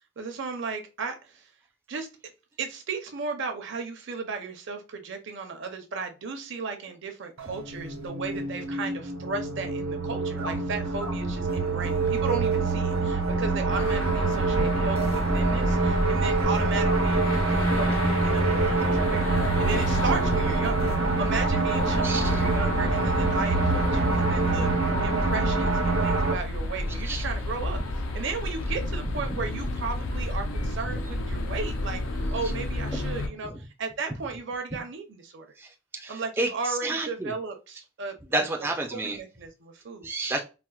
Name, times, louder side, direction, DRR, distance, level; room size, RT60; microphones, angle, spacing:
voice 1, 0.2-1.5 1.9-2.1 2.6-20.9 21.2-24.7 25.0-27.8 28.1-35.5 36.1-38.4 38.9-40.1, right 4 dB, 60° right, 5 dB, 0.6 m, -35 dB
sound 1, 7.4-26.3, right 3 dB, 80° right, 0.9 m, -25 dB
sound 2, 13.7-33.3, left 1 dB, 70° left, 0.5 m, -31 dB
voice 2, 22.0-22.4 27.0-27.3 30.9-31.0 35.6-35.7 35.9-37.3 38.3-39.2 40.0-40.4, right 2 dB, 10° right, 1 dB, 0.3 m, -30 dB
4.2 x 2.0 x 2.3 m, 0.30 s
head